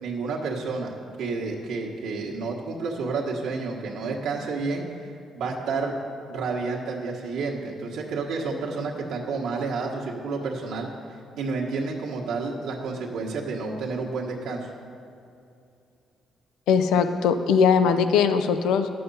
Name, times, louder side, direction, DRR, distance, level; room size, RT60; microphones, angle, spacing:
voice 1, 0.0-4.9 5.3-5.9 6.3-10.9 11.4-14.7, right 4 dB, 85° right, -2 dB, 1.4 m, -30 dB
voice 2, 16.7-18.9, left 6 dB, 90° left, 9 dB, 0.5 m, -20 dB
10.5 x 7.7 x 5.5 m, 2.5 s
cardioid pair, 90°, 0 cm